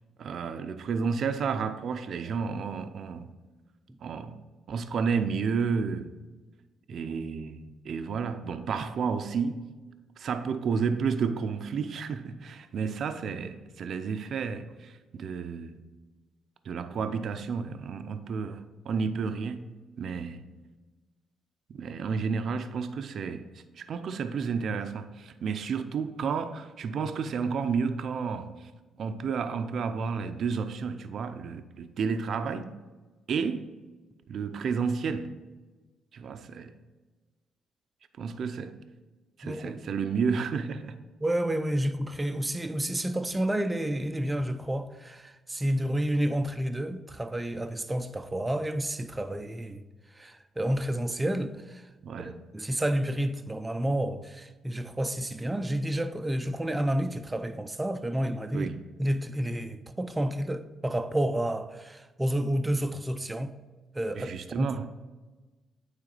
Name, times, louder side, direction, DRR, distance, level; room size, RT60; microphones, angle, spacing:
voice 1, 0.2-3.3 4.0-4.4 4.7-6.1 6.9-9.7 10.2-15.8 16.6-19.7 20.0-20.5 21.7-28.7 29.0-32.7 33.3-33.7 34.3-35.3 36.1-36.7 38.2-38.8 39.4-41.0 52.0-52.4 58.5-58.9 64.1-64.9, right 5 dB, 60° right, 0.5 m, -31 dB
voice 2, 39.4-39.8 41.2-49.8 50.2-51.8 52.2-58.7 59.0-63.6 63.9-64.8, right 1 dB, 15° right, 0.5 m, -30 dB
8.8 x 3.7 x 4.0 m
cardioid pair, 90°, 0 cm